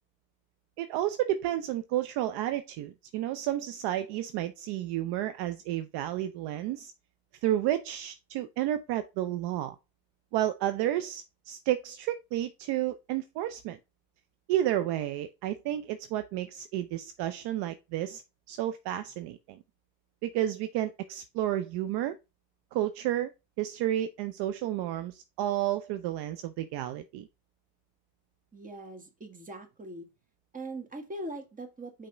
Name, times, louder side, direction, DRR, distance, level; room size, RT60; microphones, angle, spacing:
voice 1, 0.8-6.9 7.4-9.8 10.3-13.8 14.5-18.2 18.5-19.6 20.2-22.2 22.7-23.3 23.6-27.3, right 13 dB, 55° right, 0.6 m, -31 dB
voice 2, 28.5-30.1 30.5-32.1, right 1 dB, 15° right, 1.6 m, -41 dB
5.4 x 3.6 x 4.9 m
supercardioid pair, 105°, 49 cm